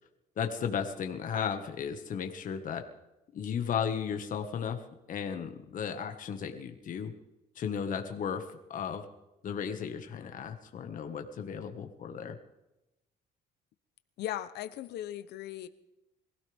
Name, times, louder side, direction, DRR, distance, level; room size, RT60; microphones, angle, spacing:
voice 1, 0.4-2.8 3.3-4.8 5.1-7.1 7.6-9.1 9.4-12.4, left 7 dB, 50° left, 5 dB, 1.8 m, -35 dB
voice 2, 14.2-15.7, left 12 dB, 75° left, 13 dB, 0.9 m, -38 dB
23.0 x 16.5 x 3.6 m, 0.94 s
cardioid pair, 110°, 17 cm